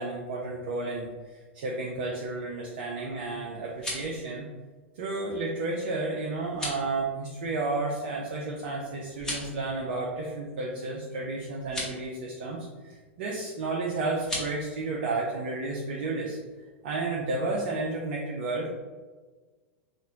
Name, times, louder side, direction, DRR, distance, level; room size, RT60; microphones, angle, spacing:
voice 1, 0.0-4.5 4.9-16.4 16.8-18.7, right 3 dB, 55° right, -2 dB, 0.5 m, -32 dB
sound 1, 3.6-4.2 6.5-6.9 9.1-9.6 11.6-11.9 14.2-14.5, left 1 dB, 10° left, 1.2 m, -35 dB
4.2 x 2.5 x 2.8 m, 1.4 s
figure-of-eight pair, 95°, 7 cm